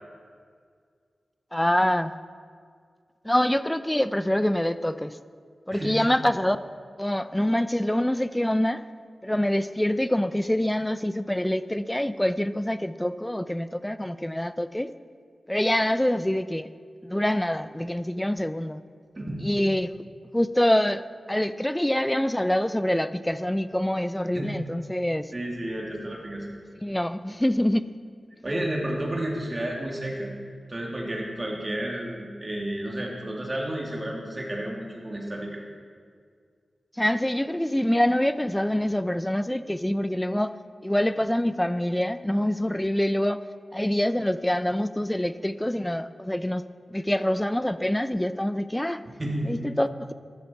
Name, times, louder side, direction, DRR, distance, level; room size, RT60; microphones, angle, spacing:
voice 1, 1.5-2.1 3.2-5.2 5.7-6.6 7.0-8.8 9.2-14.9 15.5-16.7 17.0-18.8 19.4-20.0 20.3-21.0 21.3-25.3 26.8-27.9 37.0-40.6 40.8-43.4 43.7-49.0 49.4-50.1, left 1 dB, 10° left, 13 dB, 0.5 m, -25 dB
voice 2, 19.1-19.5 24.3-24.5 25.3-26.5 28.4-30.3 30.7-35.6 49.2-49.7, right 1 dB, 30° right, -2 dB, 2.9 m, -31 dB
14.0 x 13.0 x 4.6 m, 2.1 s
wide cardioid pair, 90°, 0 cm